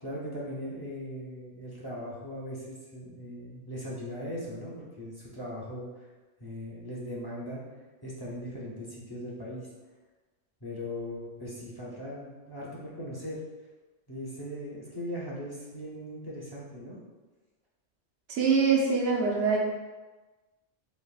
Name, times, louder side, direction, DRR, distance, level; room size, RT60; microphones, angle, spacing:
voice 1, 0.0-5.9 6.4-7.6 8.0-9.7 10.6-13.4 14.1-17.0, equal, 25° left, -6 dB, 0.5 m, -39 dB
voice 2, 18.3-19.6, right 5 dB, 90° right, -2 dB, 1.0 m, -24 dB
5.1 x 2.0 x 2.3 m, 1.2 s
omnidirectional pair, 1.2 m